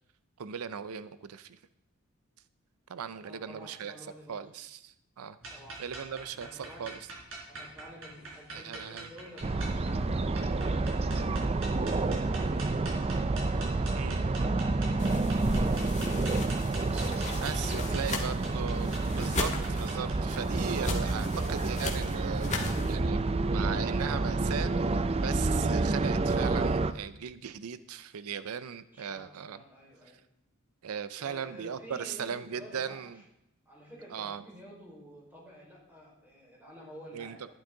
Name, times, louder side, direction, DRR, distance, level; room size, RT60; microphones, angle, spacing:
voice 1, 0.4-1.6 2.9-3.9 4.3-5.4 5.8-7.0 8.5-9.1 13.9-14.3 16.9-17.1 17.4-29.6 30.8-33.2 34.1-34.4 37.1-37.5, right 7 dB, 85° right, 14 dB, 0.5 m, -38 dB
voice 2, 3.1-4.4 5.5-7.0 7.5-11.2 14.6-16.2 28.9-30.2 31.2-33.2 33.6-37.5, equal, 10° right, -4 dB, 4.7 m, -51 dB
sound 1, 5.4-20.1, right 2 dB, 65° right, 4.1 m, -45 dB
sound 2, 9.4-26.9, right 3 dB, 25° right, 0.4 m, -29 dB
sound 3, 15.0-22.9, left 2 dB, 35° left, 1.6 m, -37 dB
12.5 x 11.0 x 3.8 m, 0.83 s
head